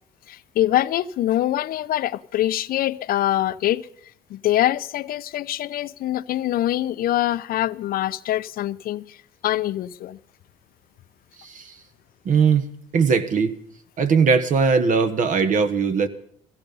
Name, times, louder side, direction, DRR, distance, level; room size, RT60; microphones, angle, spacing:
voice 1, 0.3-3.9 4.3-9.2 9.4-10.2, left 13 dB, 60° left, 0.5 m, -24 dB
voice 2, 11.4-11.7 12.2-12.7 12.9-13.5 14.0-16.1, right 5 dB, 50° right, 1.3 m, -19 dB
16.5 x 15.0 x 5.4 m
cardioid pair, 110°, 17 cm